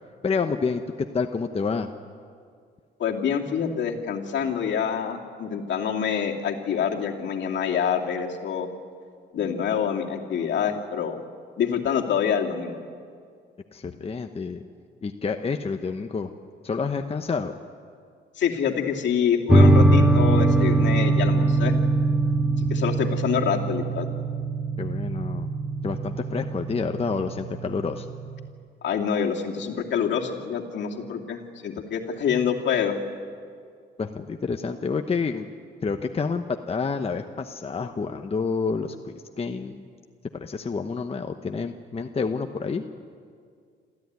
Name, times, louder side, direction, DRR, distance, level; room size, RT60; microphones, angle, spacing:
voice 1, 0.2-1.9 13.7-14.6 15.0-16.3 16.6-17.6 24.8-25.5 25.8-28.1 34.0-35.5 35.8-39.8 40.3-42.8, left 5 dB, 30° left, 5 dB, 1.0 m, -28 dB
voice 2, 3.0-8.7 9.3-11.2 11.6-12.7 18.4-21.8 22.6-24.1 28.8-33.0, left 7 dB, 65° left, 0 dB, 2.7 m, -26 dB
sound 1, 19.5-28.5, right 2 dB, 5° right, 1.6 m, -22 dB
27.0 x 14.5 x 9.6 m, 2.1 s
cardioid pair, 90°, 20 cm